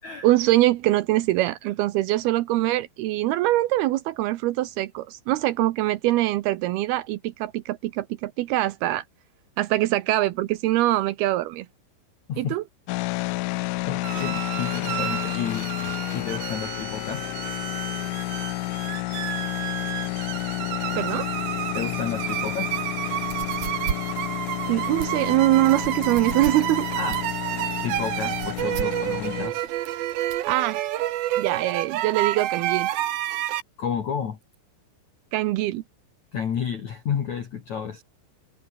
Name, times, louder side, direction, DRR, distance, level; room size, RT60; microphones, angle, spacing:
voice 1, 0.2-9.0 9.6-11.7 12.4-12.6 21.0-21.3 24.7-26.9 30.5-30.8 31.4-32.9 35.3-35.8, right 16 dB, 90° right, 2.2 m, -23 dB
sound 1, 12.9-29.5, left 19 dB, 80° left, 3.1 m, -31 dB
voice 2, 13.5-17.3 21.7-22.8 26.9-27.2 27.8-29.7 33.8-34.4 36.3-38.0, left 7 dB, 50° left, 2.4 m, -31 dB
sound 2, 14.0-33.6, right 14 dB, 70° right, 3.4 m, -30 dB
sound 3, 23.1-30.5, right 9 dB, 50° right, 2.4 m, -36 dB
omnidirectional pair, 5.7 m